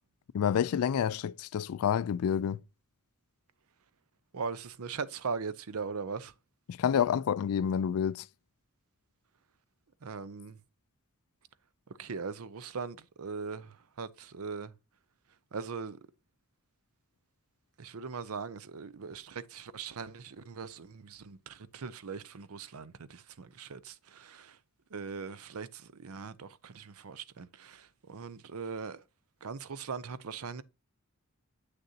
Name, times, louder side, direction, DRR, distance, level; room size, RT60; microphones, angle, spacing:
voice 1, 0.3-2.6 6.7-8.3, left 8 dB, 80° left, 0.3 m, -28 dB
voice 2, 4.3-6.3 10.0-10.6 12.0-14.7 15.5-16.0 17.8-24.6 24.9-29.0 29.4-30.6, right 5 dB, 80° right, 0.6 m, -40 dB
7.7 x 6.5 x 2.7 m
head